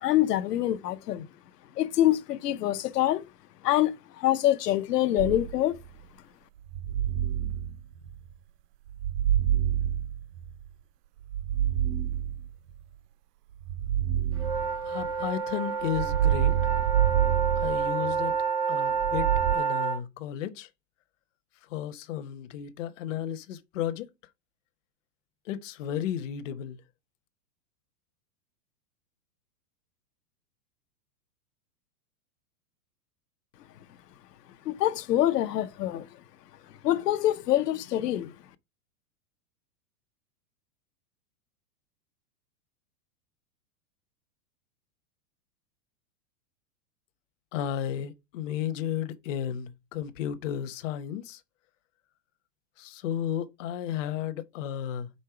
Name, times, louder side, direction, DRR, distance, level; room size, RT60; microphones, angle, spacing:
voice 1, 0.0-1.3 1.8-3.3 3.6-5.8 34.6-36.0 36.8-38.3, left 13 dB, 90° left, 0.8 m, -25 dB
sound 1, 5.2-5.9 6.7-8.3 8.9-10.7 11.2-12.8 13.6-15.3 15.8-18.4 19.0-19.6, right 11 dB, 80° right, 0.7 m, -28 dB
sound 2, 14.4-20.0, right 6 dB, 10° right, 0.4 m, -29 dB
voice 2, 14.8-16.7 17.6-18.4 18.7-20.7 21.7-24.1 25.4-26.8 47.5-51.4 52.8-55.1, left 10 dB, 50° left, 0.9 m, -33 dB
5.4 x 3.8 x 4.7 m
supercardioid pair, 150°, 47 cm